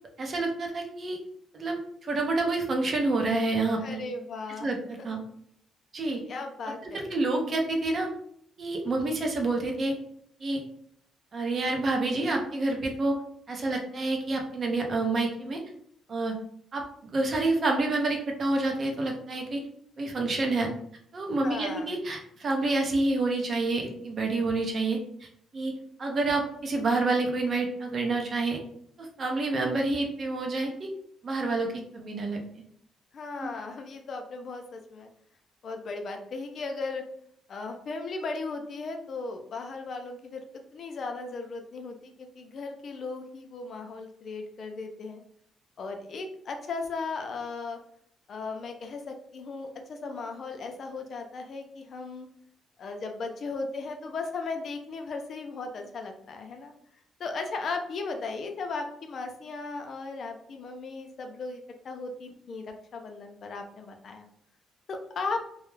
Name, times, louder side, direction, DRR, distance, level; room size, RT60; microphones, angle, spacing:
voice 1, 0.2-1.2 1.5-4.0 4.6-5.2 5.9-6.2 6.8-8.1 8.6-9.9 10.4-10.6 11.3-13.2 13.5-15.6 16.1-16.3 16.7-19.6 20.0-20.7 21.1-25.0 25.5-25.7 26.0-28.6 29.0-30.9 31.2-32.6 33.4-33.5, right 2 dB, 45° right, 2 dB, 0.6 m, -28 dB
voice 2, 3.8-4.7 5.0-5.2 6.3-7.0 21.4-21.9 33.1-35.1 35.6-37.1 37.5-40.4 40.7-45.2 45.8-47.8 48.3-52.3 52.8-56.7 57.2-62.7 62.9-64.3 64.9-65.4, left 3 dB, 55° left, 4 dB, 0.4 m, -36 dB
2.3 x 2.0 x 3.1 m, 0.69 s
cardioid pair, 90°, 0 cm